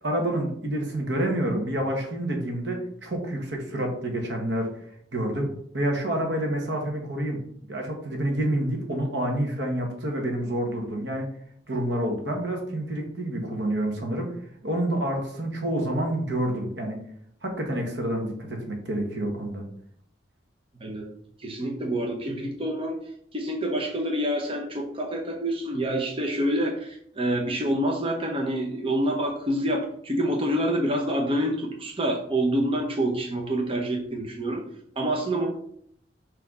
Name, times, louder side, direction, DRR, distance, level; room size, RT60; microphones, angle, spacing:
voice 1, 0.0-4.8 5.1-7.4 7.7-11.3 11.7-14.3 14.6-17.0 17.4-19.6, right 1 dB, 75° right, 2 dB, 1.5 m, -28 dB
voice 2, 20.8-21.1 21.4-23.0 23.3-34.6 35.0-35.5, right 1 dB, 30° right, 1 dB, 0.9 m, -27 dB
6.1 x 3.3 x 5.3 m, 0.67 s
head